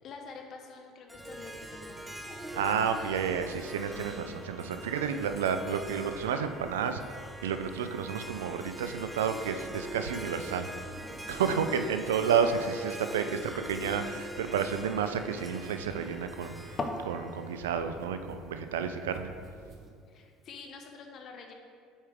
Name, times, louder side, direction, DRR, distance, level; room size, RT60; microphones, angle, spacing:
voice 1, 0.0-2.6 11.4-11.6 20.1-21.5, left 4 dB, 50° left, 3 dB, 1.0 m, -48 dB
Harp, 1.1-18.4, equal, 5° right, 0.5 m, -44 dB
sound 1, 1.1-19.9, right 2 dB, 35° right, 0.9 m, -52 dB
voice 2, 2.5-7.0 7.4-11.0 11.3-19.3, right 7 dB, 90° right, 8 dB, 0.4 m, -31 dB
sound 2, 10.6-17.1, left 2 dB, 35° left, 0.7 m, -43 dB
7.1 x 4.8 x 3.5 m, 2.2 s
hypercardioid pair, 75°, 0 cm